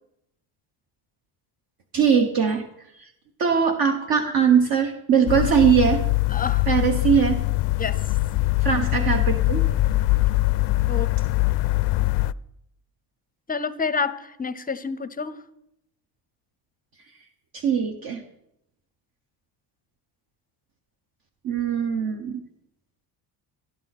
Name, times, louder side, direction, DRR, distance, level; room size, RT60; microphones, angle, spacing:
voice 1, 1.9-2.6 3.0-3.1 3.4-6.0 6.7-7.4 8.6-9.6 17.5-18.2 21.4-22.4, right 7 dB, 50° right, 5 dB, 1.3 m, -21 dB
sound 1, 5.3-12.3, left 19 dB, 65° left, 0.5 m, -22 dB
voice 2, 6.3-6.7 7.8-8.1 10.9-11.1 13.5-15.4, left 5 dB, 20° left, 15 dB, 0.6 m, -28 dB
16.0 x 12.0 x 4.2 m, 0.79 s
cardioid pair, 120°, 44 cm